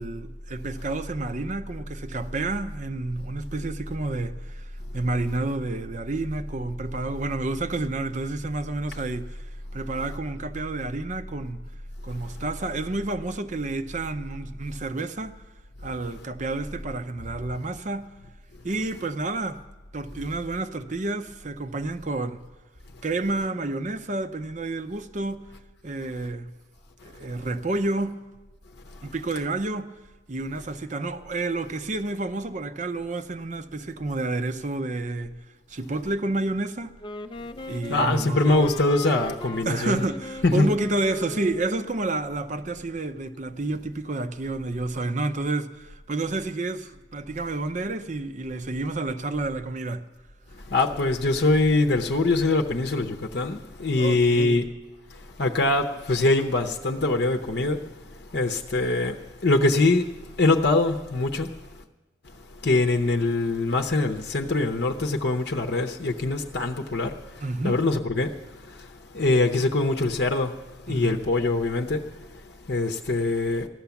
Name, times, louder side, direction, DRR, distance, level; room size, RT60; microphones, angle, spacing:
voice 1, 0.0-9.5 9.7-11.6 12.0-15.4 15.8-18.1 18.6-19.6 19.9-22.4 23.0-25.5 25.8-26.5 27.0-28.2 29.0-29.9 30.3-35.4 35.7-36.9 37.7-38.7 39.0-39.2 39.7-50.0 54.0-54.6 67.4-67.8 70.9-71.2, right 2 dB, 40° right, 0.6 m, -30 dB
Wind instrument woodwind instrument, 37.0-42.0, left 1 dB, 25° left, 0.5 m, -38 dB
voice 2, 37.9-40.1 40.4-40.9 50.7-54.7 55.4-57.8 58.3-61.5 62.6-68.3 68.7-68.9 69.1-72.1 72.7-73.7, left 2 dB, 55° left, 0.7 m, -23 dB
15.5 x 11.5 x 7.1 m
head